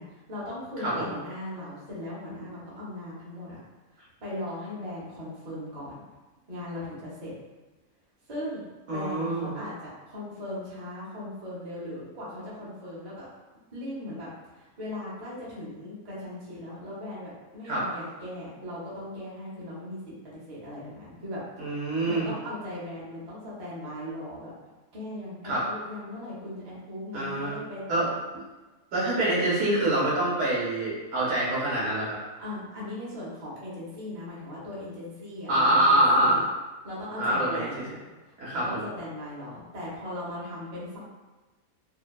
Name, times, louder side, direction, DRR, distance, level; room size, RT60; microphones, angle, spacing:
voice 1, 0.0-3.6 3.9-5.9 6.5-7.3 8.3-9.7 10.1-13.3 13.7-14.3 14.5-20.0 20.3-24.5 24.9-28.2 32.4-36.5 36.8-38.0 38.5-41.0, left 1 dB, 40° right, -8 dB, 0.6 m, -38 dB
voice 2, 0.8-1.1 2.4-2.5 8.9-9.5 17.7-17.8 21.6-22.3 25.4-25.6 27.1-27.5 27.9-28.1 28.9-32.2 35.5-36.4 37.2-37.7 38.4-38.9, right 1 dB, 60° right, -7 dB, 1.0 m, -25 dB
2.7 x 2.1 x 2.2 m, 1.2 s
omnidirectional pair, 1.5 m